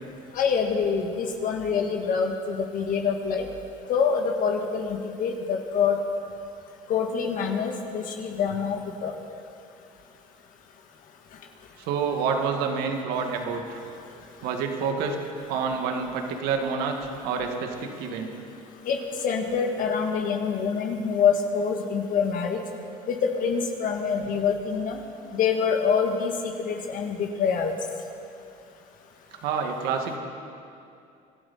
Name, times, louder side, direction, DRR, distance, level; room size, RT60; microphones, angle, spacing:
voice 1, 0.4-3.5 3.9-6.0 6.9-9.1 18.9-19.0 19.2-22.6 23.1-25.0 25.3-27.7, left 6 dB, 55° left, 3 dB, 1.8 m, -25 dB
voice 2, 11.8-13.8 14.4-15.2 15.5-18.3 29.4-30.2, right 5 dB, 75° right, 3 dB, 2.1 m, -28 dB
25.0 x 12.5 x 4.4 m, 2.5 s
supercardioid pair, 90°, 16 cm